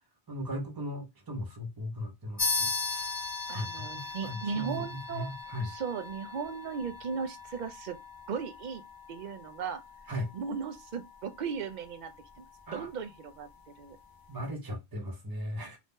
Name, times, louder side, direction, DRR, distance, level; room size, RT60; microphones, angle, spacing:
voice 1, 0.3-3.2 3.5-5.7 10.1-10.3 12.7-12.9 14.3-15.8, left 1 dB, 20° right, 0.8 m, -38 dB
sound 1, 2.4-12.3, left 4 dB, 30° left, 0.5 m, -38 dB
voice 2, 3.5-5.3 5.6-8.0 8.3-8.8 9.1-9.8 10.3-12.1 12.4-12.5 12.7-13.5 13.8-14.0, right 6 dB, 55° right, 0.6 m, -36 dB
2.7 x 2.4 x 3.5 m
omnidirectional pair, 1.1 m